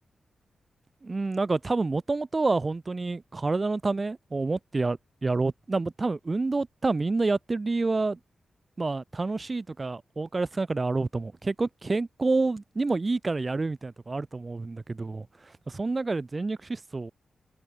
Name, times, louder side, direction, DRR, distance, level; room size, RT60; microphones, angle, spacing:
voice 1, 1.0-8.2 8.8-15.3 15.7-17.1, right 3 dB, 35° right, 0.5 m, -28 dB
cardioid pair, 80°, 0 cm